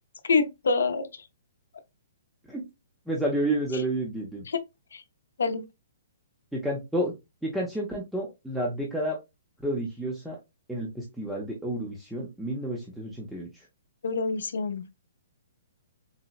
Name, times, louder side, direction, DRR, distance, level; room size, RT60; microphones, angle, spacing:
voice 1, 0.2-1.2 3.7-3.8 4.5-4.6 4.9-5.0 5.4-5.6 14.0-14.8, left 4 dB, 90° left, 0.5 m, -26 dB
voice 2, 3.1-4.5 6.5-7.1 7.4-9.2 9.6-10.4 10.7-13.6, right 1 dB, ahead, 0.4 m, -30 dB
3.9 x 2.0 x 2.3 m
hypercardioid pair, 175°, 0 cm